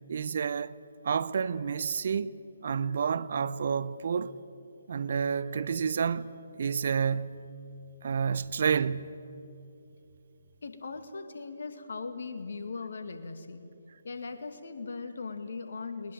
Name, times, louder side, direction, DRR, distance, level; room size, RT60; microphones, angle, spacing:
voice 1, 0.1-0.7 1.0-4.3 4.9-6.3 6.6-7.5 8.0-9.2, right 6 dB, 50° right, 0.7 m, -29 dB
voice 2, 10.6-13.6 14.0-16.1, left 4 dB, 60° left, 2.3 m, -39 dB
21.0 x 20.5 x 9.3 m
figure-of-eight pair, 140°, 0 cm